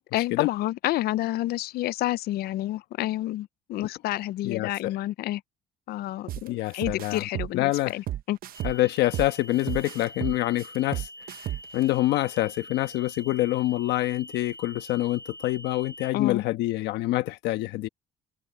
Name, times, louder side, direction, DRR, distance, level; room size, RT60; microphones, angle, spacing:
voice 1, 0.1-5.4 5.9-8.4 16.1-16.4, left 15 dB, 65° left, 0.5 m, -29 dB
voice 2, 4.4-4.9 6.5-7.3 7.5-7.9 8.6-11.1 11.7-17.9, left 16 dB, 85° left, 1.3 m, -26 dB
sound 1, 6.3-6.5 6.8-9.3 9.7-11.8, right 13 dB, 60° right, 0.9 m, -33 dB
sound 2, 8.5-16.1, equal, 25° right, 1.1 m, -45 dB
cardioid pair, 110°, 17 cm